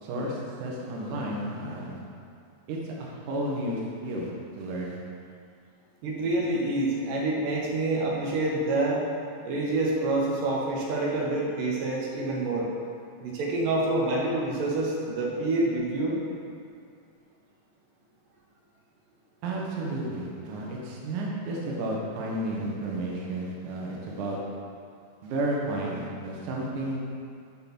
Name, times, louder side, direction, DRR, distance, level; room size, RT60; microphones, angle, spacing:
voice 1, 0.0-2.0 2.7-4.3 4.6-5.0 19.4-24.4 25.2-27.0, right 1 dB, 70° right, -3 dB, 2.5 m, -32 dB
voice 2, 6.0-9.0 9.4-12.7 13.2-16.2, right 2 dB, 90° right, -3 dB, 2.8 m, -27 dB
11.0 x 3.8 x 6.0 m, 2.3 s
omnidirectional pair, 3.8 m